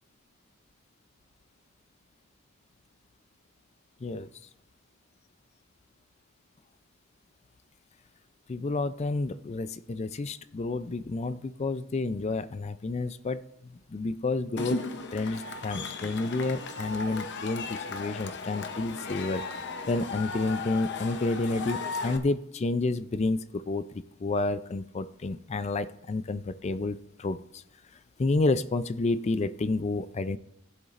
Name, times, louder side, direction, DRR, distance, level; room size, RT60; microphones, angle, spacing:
voice 1, 8.5-13.4 13.9-14.8 15.1-19.4 19.9-23.9 24.2-27.6 28.2-30.4, left 3 dB, 30° left, 13 dB, 0.4 m, -30 dB
Cheering / Crowd, 14.6-22.2, left 3 dB, 55° left, 0.8 m, -36 dB
19.5 x 8.0 x 2.5 m, 0.80 s
head